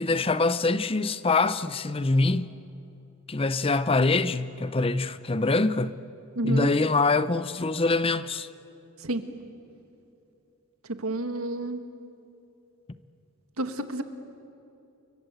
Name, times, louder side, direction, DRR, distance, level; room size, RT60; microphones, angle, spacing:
voice 1, 0.0-2.5 3.3-6.0 6.4-8.5, left 3 dB, 25° left, 0.6 m, -24 dB
voice 2, 6.4-6.7 9.0-9.2 11.0-11.8 13.6-14.0, right 2 dB, 85° right, 1.8 m, -29 dB
29.0 x 23.0 x 8.2 m
head